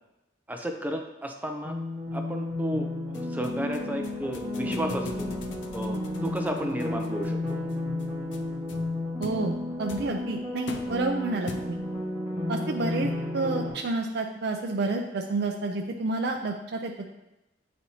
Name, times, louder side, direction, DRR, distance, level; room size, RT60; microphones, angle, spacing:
voice 1, 0.5-1.7 2.1-5.3 5.7-7.6 12.3-12.5, right 1 dB, 10° right, 3 dB, 0.5 m, -33 dB
sound 1, 1.6-13.7, left 2 dB, 5° left, 1.6 m, -32 dB
sound 2, 3.1-12.0, left 3 dB, 75° left, 0.5 m, -44 dB
voice 2, 9.2-11.8 12.5-17.1, right 3 dB, 60° right, 1 dB, 0.4 m, -30 dB
8.9 x 4.2 x 2.8 m, 0.95 s
head